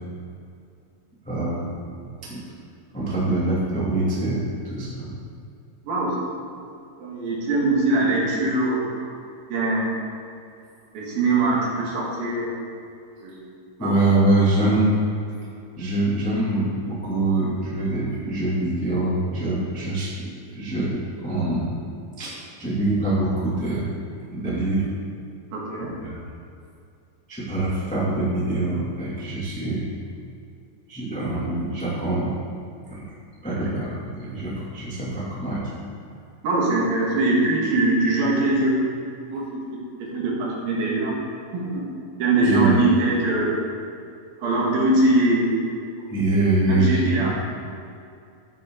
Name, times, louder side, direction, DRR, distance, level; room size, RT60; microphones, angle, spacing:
voice 1, 1.2-1.6 2.2-2.4 2.9-5.1 13.8-14.9 15.8-20.3 20.5-21.7 22.2-23.8 24.3-24.8 26.0-26.1 27.3-29.8 30.9-32.3 32.9-33.0 33.4-35.6 42.4-42.9 46.1-47.3, right 2 dB, 10° left, -7 dB, 0.5 m, -24 dB
voice 2, 5.8-6.2 6.5-6.6 7.0-9.1 9.5-9.9 10.9-12.5 13.2-14.0 25.5-25.9 36.4-38.8 39.3-39.6 40.1-41.2 41.5-41.8 42.2-43.6 44.4-45.5 46.7-47.3, right 2 dB, 60° right, -4 dB, 3.2 m, -22 dB
13.0 x 9.6 x 3.9 m, 2.4 s
omnidirectional pair, 5.4 m